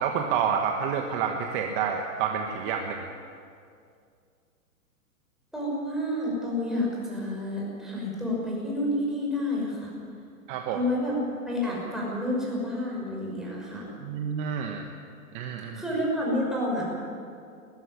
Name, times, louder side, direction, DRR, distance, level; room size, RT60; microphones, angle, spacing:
voice 1, 0.0-3.0 10.5-10.8 14.0-14.9 15.3-15.8, right 7 dB, 35° right, 3 dB, 1.5 m, -29 dB
voice 2, 5.5-9.9 10.7-11.2 11.5-13.9 15.8-16.8, left 1 dB, ahead, -5 dB, 6.1 m, -29 dB
20.5 x 14.0 x 10.0 m, 2.3 s
hypercardioid pair, 145°, 43 cm